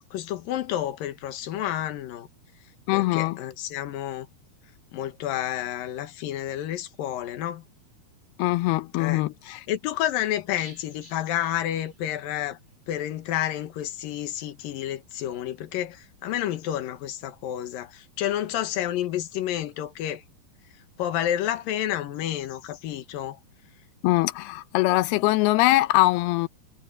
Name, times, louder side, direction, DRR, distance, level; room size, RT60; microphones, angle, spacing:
voice 1, 0.0-2.3 2.9-4.3 4.9-7.6 9.0-12.6 12.9-20.2 21.0-23.4, left 12 dB, 70° left, 3.0 m, -30 dB
voice 2, 2.9-3.4 8.4-9.6 24.0-26.5, left 19 dB, 85° left, 2.7 m, -22 dB
sound 1, 10.6-12.4 12.6-12.7 13.1-13.2, left 1 dB, 15° left, 5.5 m, -50 dB
omnidirectional pair, 4.5 m